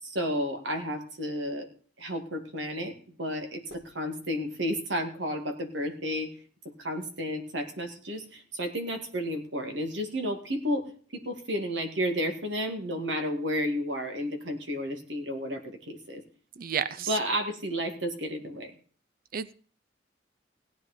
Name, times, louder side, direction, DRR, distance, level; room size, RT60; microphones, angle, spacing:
voice 1, 0.0-1.7 2.0-6.3 6.8-16.2 17.1-18.7, equal, 90° right, 5 dB, 2.3 m, -32 dB
voice 2, 16.6-17.1 19.3-19.5, right 8 dB, 50° right, 16 dB, 0.5 m, -31 dB
17.5 x 9.5 x 4.3 m, 0.43 s
head